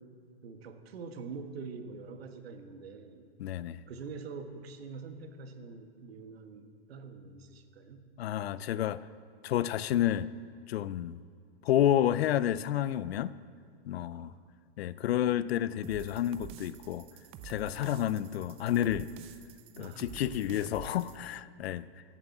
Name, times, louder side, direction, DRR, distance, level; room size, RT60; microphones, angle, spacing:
voice 1, 0.4-3.3 3.9-8.0 14.1-14.4 17.6-17.8 19.8-20.0 21.2-21.3, right 4 dB, 80° right, 7 dB, 1.6 m, -45 dB
voice 2, 3.4-3.8 8.2-9.1 9.4-10.3 10.7-11.2 11.6-13.3 13.9-14.3 14.8-17.0 17.4-19.1 19.8-21.9, left 11 dB, 80° left, 17 dB, 0.6 m, -30 dB
sound 1, 15.8-21.2, right 9 dB, 20° right, 0.4 m, -49 dB
14.0 x 7.4 x 8.4 m, 2.3 s
supercardioid pair, 150°, 30 cm